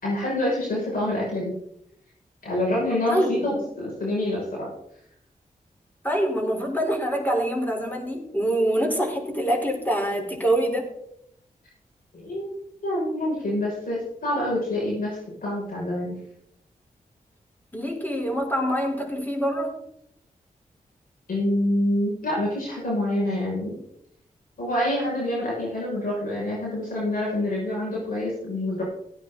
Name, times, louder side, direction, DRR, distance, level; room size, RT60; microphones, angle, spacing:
voice 1, 0.0-1.5 2.4-4.7 12.1-16.2 21.3-23.8 24.6-28.8, left 1 dB, 75° left, -5 dB, 6.6 m, -26 dB
voice 2, 3.1-3.4 6.0-10.9 17.7-19.8, right 1 dB, 10° left, 0 dB, 4.5 m, -25 dB
16.5 x 9.5 x 4.1 m, 0.75 s
cardioid pair, 55°, 15 cm